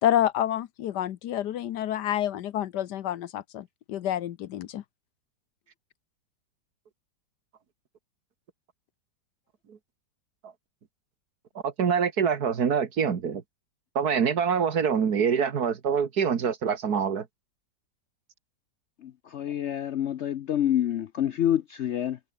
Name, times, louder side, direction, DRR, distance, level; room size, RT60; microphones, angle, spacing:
voice 1, 0.0-4.8, left 11 dB, 70° left, 1.4 m, -28 dB
voice 2, 11.6-13.4 14.0-17.3, right 7 dB, 60° right, 2.0 m, -25 dB
voice 3, 19.0-22.2, left 11 dB, 90° left, 0.6 m, -27 dB
omnidirectional pair, 1.9 m